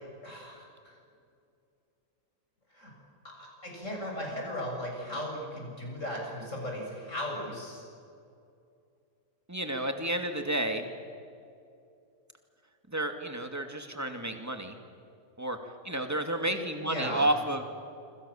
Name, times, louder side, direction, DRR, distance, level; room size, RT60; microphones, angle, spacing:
voice 1, 0.2-1.0 2.7-2.9 3.2-7.8 16.8-17.3, left 1 dB, 55° left, 0 dB, 7.5 m, -37 dB
voice 2, 9.5-10.9 12.9-14.8 15.4-15.6 15.8-17.6, right 1 dB, 10° right, 6 dB, 2.4 m, -31 dB
26.5 x 26.0 x 7.3 m, 2.5 s
omnidirectional pair, 1.6 m